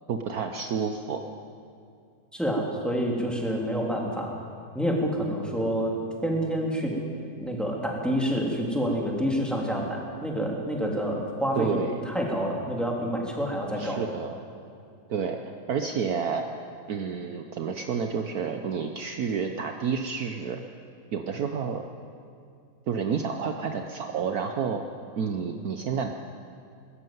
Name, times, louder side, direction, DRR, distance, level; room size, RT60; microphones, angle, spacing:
voice 1, 0.1-1.2 11.6-12.0 13.8-14.4 15.1-15.4 15.7-16.5 16.9-20.6 21.1-21.8 22.9-24.8 25.2-26.1, right 6 dB, 60° right, 5 dB, 1.3 m, -29 dB
voice 2, 2.3-4.3 4.7-5.9 6.2-6.9 7.4-14.0, equal, ahead, -2 dB, 3.2 m, -28 dB
21.5 x 13.5 x 9.3 m, 2.4 s
omnidirectional pair, 1.9 m